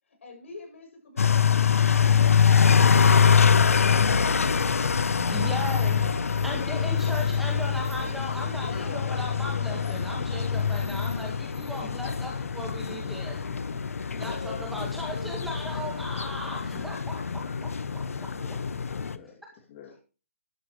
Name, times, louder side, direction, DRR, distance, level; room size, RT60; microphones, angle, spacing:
voice 1, 0.2-5.7 6.0-6.8 8.3-9.0 9.8-10.4 14.2-15.2 16.7-17.7 19.8-20.0, left 5 dB, 65° left, 2 dB, 7.7 m, -46 dB
sound 1, 1.2-19.2, left 6 dB, 90° left, 1.0 m, -24 dB
voice 2, 5.3-6.0 6.4-13.4 14.2-17.2 17.9-18.0, equal, ahead, -1 dB, 1.8 m, -37 dB
voice 3, 12.8-15.1 16.6-16.9 18.1-19.4 19.7-20.0, left 6 dB, 30° left, -2 dB, 2.9 m, -49 dB
13.0 x 12.0 x 3.3 m, 0.35 s
hypercardioid pair, 165°, 7 cm